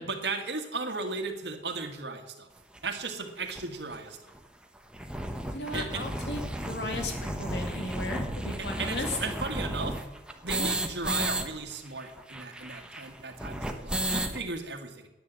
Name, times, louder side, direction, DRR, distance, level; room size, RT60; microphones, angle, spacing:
voice 1, 0.0-2.5 2.8-4.3 5.7-6.1 8.6-10.0 10.4-15.1, right 3 dB, 70° right, 5 dB, 1.7 m, -36 dB
sound 1, 2.8-2.9 3.5-3.6 3.9-4.0 4.3-4.4 4.8-11.4 11.7-11.8 12.0-14.4, right 1 dB, 5° right, 1.1 m, -33 dB
voice 2, 5.5-9.2, left 2 dB, 70° left, 3 dB, 2.4 m, -36 dB
10.5 x 9.4 x 7.6 m, 1.0 s
head